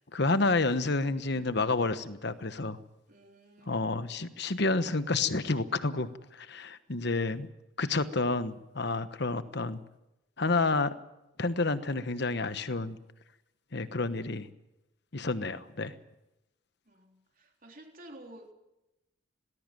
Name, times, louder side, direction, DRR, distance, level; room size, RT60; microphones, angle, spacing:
voice 1, 0.1-2.8 3.7-7.5 7.8-9.8 10.4-10.9 11.4-13.0 13.7-14.5 15.1-15.9, left 3 dB, 55° left, 12 dB, 1.2 m, -29 dB
voice 2, 3.1-3.8 16.9-18.5, right 1 dB, 40° right, 3 dB, 3.6 m, -52 dB
19.5 x 17.0 x 9.2 m, 0.94 s
head